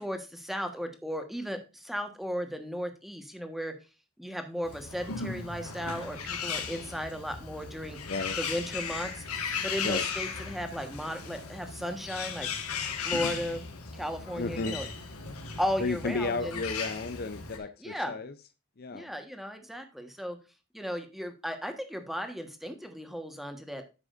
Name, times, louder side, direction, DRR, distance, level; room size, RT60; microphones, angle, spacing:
voice 1, 0.0-3.8 4.2-8.0 8.4-9.2 9.6-12.5 13.0-13.7 13.9-14.8 15.6-16.6 17.8-18.2 18.9-20.4 20.7-23.8, equal, ahead, 1.3 m, -35 dB
Bird, 4.6-17.6, left 5 dB, 85° left, 1.7 m, -37 dB
voice 2, 8.1-8.4 9.8-10.0 14.3-14.8 15.8-18.3 18.8-19.1, left 3 dB, 45° left, 0.6 m, -33 dB
10.5 x 7.4 x 2.5 m
head